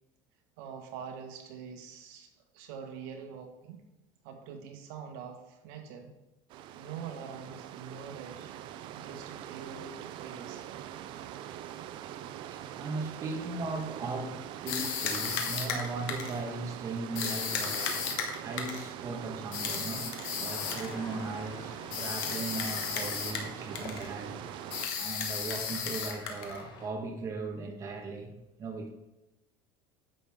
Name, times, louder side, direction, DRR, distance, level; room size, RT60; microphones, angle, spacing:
voice 1, 0.6-2.3 2.5-3.8 4.2-6.1 6.7-8.5 8.9-10.6, right 7 dB, 70° right, 1.6 m, -44 dB
sound 1, 6.5-24.9, right 11 dB, 40° right, 0.5 m, -43 dB
voice 2, 11.7-24.4 25.0-28.3 28.6-28.9, right 3 dB, 25° right, 1.4 m, -38 dB
sound 2, 14.7-16.4 17.2-18.9 19.5-20.9 21.9-23.5 23.8-24.1 24.7-26.6, left 6 dB, 80° left, 1.6 m, -34 dB
sound 3, 20.5-26.9, left 4 dB, 35° left, 1.3 m, -49 dB
10.0 x 7.1 x 3.6 m
cardioid pair, 170°, 12 cm